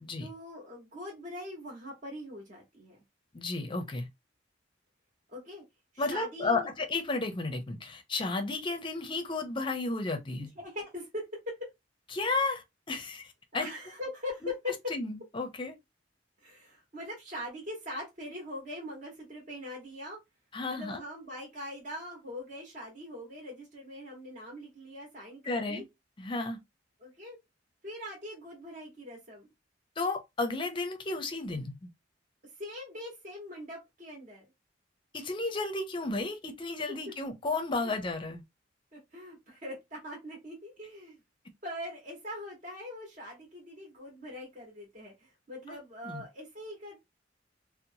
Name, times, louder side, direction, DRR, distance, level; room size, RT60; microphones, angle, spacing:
voice 1, 0.2-3.0 5.3-5.6 5.9-6.7 10.4-11.7 13.5-14.7 16.4-20.2 20.7-25.8 27.0-27.4 27.8-29.5 32.4-34.5 37.1-37.2 37.8-37.9 38.9-41.2 41.6-47.0, left 1 dB, 45° right, 1.0 m, -42 dB
voice 2, 3.3-4.1 6.0-10.5 12.1-13.7 14.4-14.5 14.9-15.8 20.5-21.0 25.4-25.8 26.2-26.6 30.0-31.9 35.1-38.4 45.7-45.8 46.0-46.2, left 3 dB, 25° left, 0.5 m, -33 dB
2.9 x 2.0 x 2.6 m
head